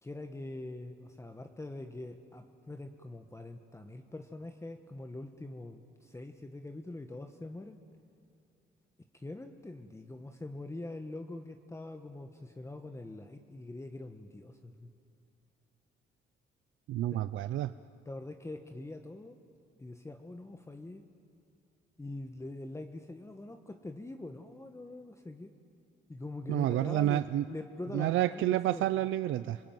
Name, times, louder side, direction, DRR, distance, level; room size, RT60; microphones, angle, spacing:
voice 1, 0.0-7.8 9.1-14.9 17.1-17.2 18.0-19.4 19.8-21.1 22.0-25.5 26.1-28.8, left 2 dB, 15° left, 6 dB, 1.3 m, -44 dB
voice 2, 16.9-17.7 26.5-27.4 27.9-29.6, right 13 dB, 80° right, 13 dB, 0.6 m, -29 dB
27.0 x 20.0 x 9.3 m, 2.4 s
cardioid pair, 90°, 20 cm